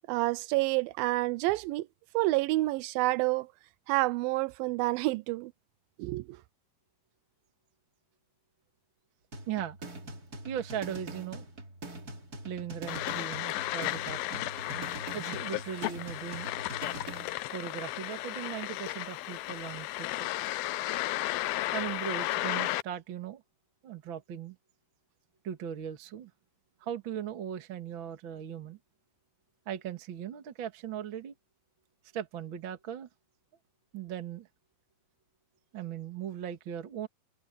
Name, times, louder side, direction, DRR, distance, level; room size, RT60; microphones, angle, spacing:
voice 1, 0.1-1.9 2.1-3.5 3.9-5.5 6.0-6.3, right 20 dB, 80° right, 2.3 m, -28 dB
sound 1, 9.3-17.3, right 2 dB, 25° right, 2.8 m, -43 dB
voice 2, 9.5-9.8 10.5-11.5 12.4-16.5 17.5-20.3 21.4-23.4 23.8-24.6 25.4-26.3 26.8-28.8 29.7-31.3 32.1-33.1 33.9-34.5 35.7-37.1, right 9 dB, 45° right, 1.8 m, -38 dB
sound 2, 12.9-22.8, left 17 dB, 80° left, 2.5 m, -34 dB
omnidirectional pair, 4.3 m